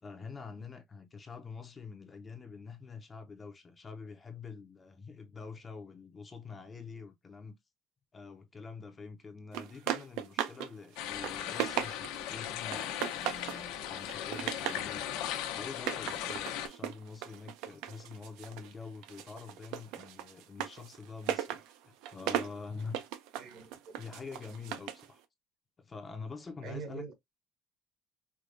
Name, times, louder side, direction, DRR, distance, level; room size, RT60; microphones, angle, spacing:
voice 1, 0.0-7.5 8.1-23.0 24.0-25.2 25.8-27.1, left 4 dB, 20° left, 0.5 m, -46 dB
sound 1, 9.5-10.7 11.0-12.3 12.7-13.6 14.0-14.9 15.7-18.7 19.0-25.1, right 11 dB, 70° right, 0.5 m, -37 dB
sound 2, 11.0-16.7, left 11 dB, 85° left, 0.8 m, -38 dB
voice 2, 23.4-24.0 26.6-27.1, right 5 dB, 50° right, 1.0 m, -43 dB
4.7 x 2.2 x 2.6 m
cardioid pair, 170°, 0 cm